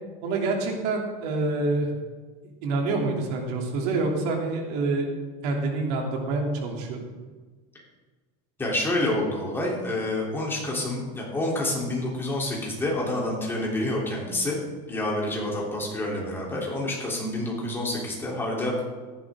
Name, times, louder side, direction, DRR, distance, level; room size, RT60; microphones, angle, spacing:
voice 1, 0.2-1.9 2.6-5.1 5.4-7.0, right 3 dB, 70° right, 1 dB, 3.1 m, -27 dB
voice 2, 8.6-14.6 14.9-18.8, left 1 dB, 10° left, -3 dB, 3.4 m, -28 dB
15.0 x 11.5 x 3.8 m, 1.3 s
cardioid pair, 155°, 21 cm